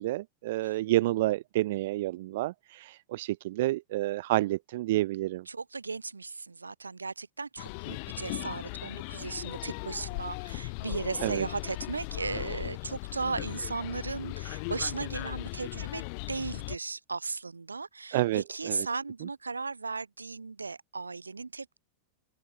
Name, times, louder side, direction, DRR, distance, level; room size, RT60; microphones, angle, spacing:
voice 1, 0.0-5.4 11.2-11.4 18.1-18.9, right 17 dB, 60° right, 0.4 m, -29 dB
voice 2, 5.5-21.8, right 4 dB, 90° right, 3.0 m, -36 dB
sound 1, 7.6-16.8, left 33 dB, 50° left, 1.2 m, -38 dB
open air
figure-of-eight pair, 95°, 0 cm